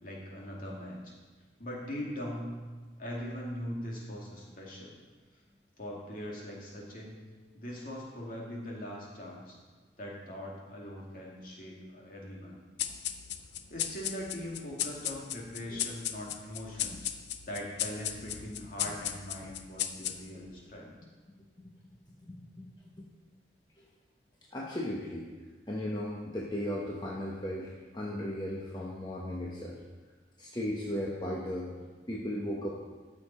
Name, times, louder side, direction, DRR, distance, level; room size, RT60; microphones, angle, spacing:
voice 1, 0.0-1.1 1.6-2.6 3.0-5.0 5.8-7.2 7.5-9.6 10.0-12.6 13.7-17.1 17.5-20.9, equal, 50° left, -3 dB, 2.3 m, -41 dB
sound 1, 12.8-20.5, left 10 dB, 70° left, 0.6 m, -37 dB
voice 2, 22.2-22.7 23.0-23.1 23.8-23.9 24.5-25.3 25.7-29.8 30.4-32.7, left 1 dB, 25° left, -3 dB, 1.0 m, -36 dB
14.0 x 6.7 x 4.2 m, 1.3 s
head